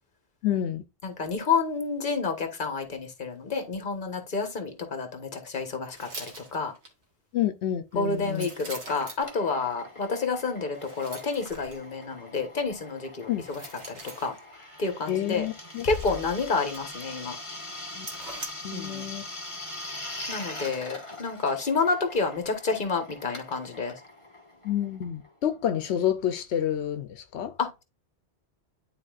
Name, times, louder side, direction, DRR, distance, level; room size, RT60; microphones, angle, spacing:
voice 1, 0.4-0.8 7.3-8.5 13.3-13.4 15.1-15.9 17.9-18.1 18.6-19.2 24.6-27.5, left 10 dB, 85° left, 0.9 m, -29 dB
voice 2, 1.0-6.7 7.9-14.3 14.8-15.5 15.8-17.4 18.7-19.1 20.3-24.0 27.6-27.8, left 4 dB, 50° left, 1.4 m, -29 dB
sound 1, 5.9-6.9 7.9-9.3 10.7-11.8 13.4-14.4 15.7-17.1 17.4-17.5 17.9-18.5, right 2 dB, 85° right, 1.9 m, -43 dB
Drill, 9.2-25.5, left 1 dB, 30° left, 1.2 m, -42 dB
Bass drum, 15.8-17.3, left 7 dB, 65° left, 0.9 m, -39 dB
11.0 x 4.0 x 2.4 m
omnidirectional pair, 1.1 m